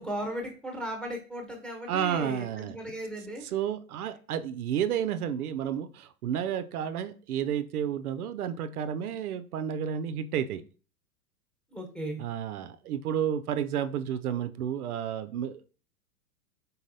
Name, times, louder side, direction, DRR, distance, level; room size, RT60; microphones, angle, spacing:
voice 1, 0.0-3.5 11.7-12.2, right 1 dB, ahead, 1 dB, 1.0 m, -36 dB
voice 2, 1.9-2.8 3.4-10.6 12.2-15.7, right 9 dB, 75° right, 11 dB, 0.5 m, -31 dB
4.1 x 4.0 x 2.7 m, 0.39 s
hypercardioid pair, 105°, 45 cm